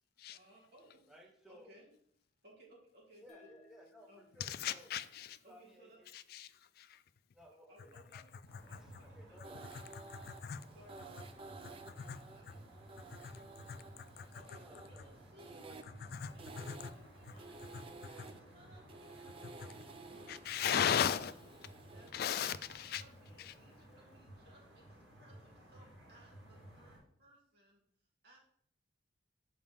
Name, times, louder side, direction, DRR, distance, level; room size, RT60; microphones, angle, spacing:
voice 1, 0.3-1.1 1.5-1.9 2.4-3.5 4.1-4.3 5.4-6.0 7.7-8.3 8.7-9.7 10.7-13.9 14.3-15.7 16.1-17.8 18.0-19.4 20.0-27.8 28.2-28.4, equal, 60° right, 2.3 m, -63 dB
voice 2, 1.1-1.7 3.2-4.9 5.5-6.1 7.3-8.2 8.7-9.9 14.5-15.1, equal, ahead, 0.8 m, -59 dB
sound 1, 3.3-6.5, left 2 dB, 35° left, 1.1 m, -68 dB
voice 3, 4.4-5.4 6.1-7.0 8.1-8.2 8.5-8.8 9.9-10.7 12.0-12.2 12.5-12.6 13.1-13.4 13.7-14.3 16.0-16.9 17.7-17.8 19.4-19.7 20.3-21.3 22.1-23.0 23.4-23.5, left 8 dB, 55° left, 0.3 m, -37 dB
sound 2, 8.4-27.0, right 1 dB, 85° right, 2.4 m, -57 dB
sound 3, 9.4-22.1, right 3 dB, 30° right, 0.4 m, -54 dB
5.9 x 4.9 x 3.6 m
head